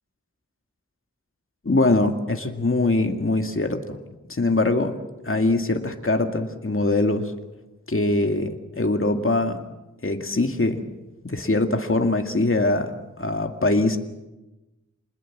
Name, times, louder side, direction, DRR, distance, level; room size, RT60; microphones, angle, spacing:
voice 1, 1.6-4.0 4.3-4.9 5.2-7.3 7.9-9.6 10.0-10.8 11.2-14.0, left 2 dB, 45° left, 5 dB, 2.2 m, -22 dB
28.0 x 20.5 x 7.4 m, 1.0 s
wide cardioid pair, 45°, 30 cm